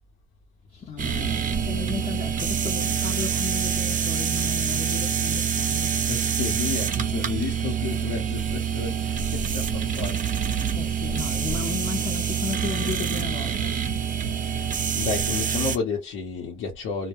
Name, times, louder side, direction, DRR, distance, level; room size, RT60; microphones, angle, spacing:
voice 1, 0.7-5.9 10.7-13.8, left 6 dB, 45° left, 0.7 m, -34 dB
sound 1, 1.0-15.8, right 7 dB, 40° right, 0.6 m, -26 dB
voice 2, 6.0-10.3 14.4-17.1, left 5 dB, 85° left, 0.8 m, -32 dB
2.1 x 2.1 x 2.9 m
cardioid pair, 90°, 20 cm